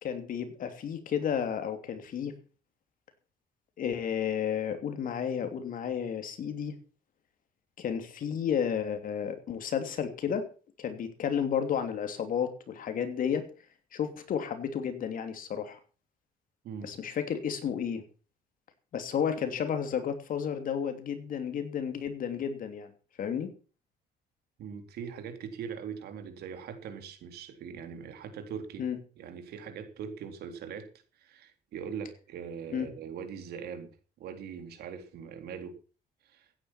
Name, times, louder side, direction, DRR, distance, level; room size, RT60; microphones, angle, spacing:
voice 1, 0.0-2.3 3.8-6.7 7.8-10.5 10.8-13.5 13.9-15.8 16.8-18.0 18.9-22.9 23.2-23.5 28.8-29.0 32.7-32.9, left 8 dB, 55° left, 8 dB, 3.1 m, -32 dB
voice 2, 24.6-28.8 29.2-30.9 31.2-33.9 34.2-35.8 36.2-36.5, right 7 dB, 70° right, 7 dB, 3.7 m, -41 dB
16.0 x 9.9 x 5.9 m, 0.37 s
cardioid pair, 110°, 17 cm